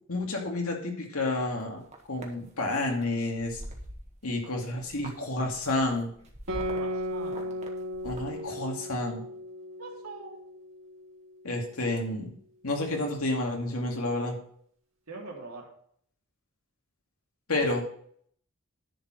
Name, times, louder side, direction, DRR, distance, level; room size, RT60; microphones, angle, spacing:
voice 1, 0.1-1.8 2.1-3.6 4.2-6.1 8.0-9.2 11.4-12.3 12.6-14.4 17.5-17.8, left 2 dB, 85° left, 1 dB, 2.4 m, -30 dB
sound 1, 1.6-2.3 2.8-3.0 3.3-4.5 4.7-8.4, right 1 dB, 30° right, 1.5 m, -44 dB
Guitar, 6.5-11.4, equal, 60° right, 2.0 m, -36 dB
voice 2, 6.8-7.6 9.8-10.4 15.1-15.7 17.5-17.8, right 3 dB, 80° right, -1 dB, 3.0 m, -42 dB
10.5 x 4.8 x 6.3 m, 0.62 s
head